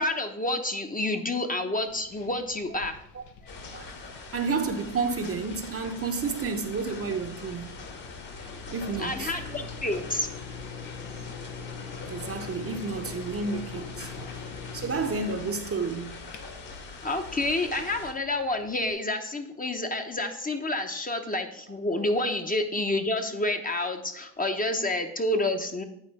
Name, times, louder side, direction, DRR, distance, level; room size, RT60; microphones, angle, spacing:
voice 1, 0.0-3.0 9.0-10.3 17.0-25.8, left 2 dB, 20° left, 0.8 m, -29 dB
sound 1, 1.9-18.9, left 5 dB, 80° left, 0.9 m, -44 dB
sound 2, 3.5-18.1, left 4 dB, 50° left, 1.6 m, -43 dB
voice 2, 4.3-7.7 8.7-9.3 12.1-14.3 14.7-16.2, right 4 dB, 30° right, 0.8 m, -31 dB
8.9 x 4.3 x 4.1 m
supercardioid pair, 75°, 43 cm